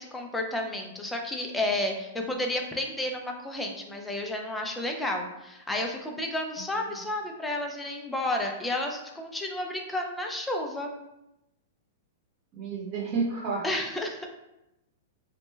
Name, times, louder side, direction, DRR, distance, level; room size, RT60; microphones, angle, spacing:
voice 1, 0.0-10.9 13.6-14.3, left 1 dB, 5° left, 2 dB, 0.4 m, -31 dB
voice 2, 12.5-13.6, right 4 dB, 30° right, -4 dB, 0.7 m, -31 dB
3.0 x 2.1 x 3.2 m, 0.90 s
hypercardioid pair, 155°, 0 cm